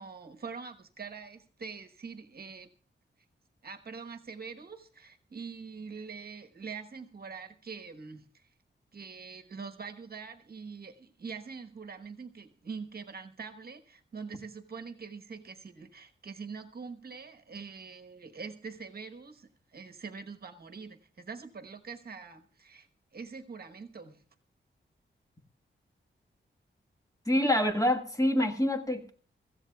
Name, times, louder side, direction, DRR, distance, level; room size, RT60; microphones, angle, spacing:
voice 1, 0.0-2.7 3.6-8.5 8.9-22.9 23.1-24.2, right 5 dB, 50° right, 6 dB, 1.1 m, -44 dB
voice 2, 27.3-29.1, left 1 dB, 15° left, 4 dB, 1.4 m, -26 dB
24.5 x 14.5 x 2.3 m, 0.42 s
wide cardioid pair, 135°, 20 cm